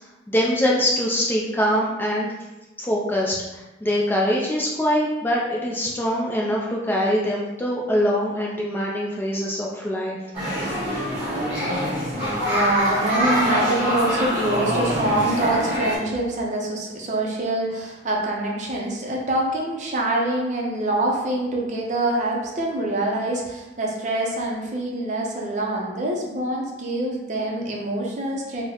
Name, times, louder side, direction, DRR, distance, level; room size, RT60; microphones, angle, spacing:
voice 1, 0.3-2.3 2.8-3.4 3.8-10.2, equal, 10° left, -3 dB, 0.3 m, -23 dB
sound 1, 10.3-16.0, equal, 10° right, 1.3 m, -24 dB
voice 2, 12.5-28.6, right 1 dB, 40° right, -1 dB, 0.5 m, -25 dB
3.8 x 2.0 x 2.9 m, 1.1 s
head